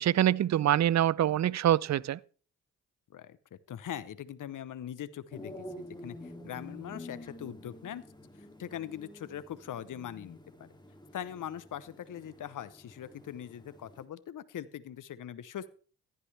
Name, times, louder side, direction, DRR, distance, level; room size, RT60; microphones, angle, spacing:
voice 1, 0.0-2.2, right 11 dB, 50° right, 0.6 m, -25 dB
voice 2, 3.7-8.0 8.6-10.7 11.1-15.7, left 10 dB, 60° left, 0.9 m, -41 dB
sound 1, 5.3-14.1, left 1 dB, 10° left, 2.7 m, -49 dB
15.0 x 11.0 x 3.4 m
supercardioid pair, 45°, 35 cm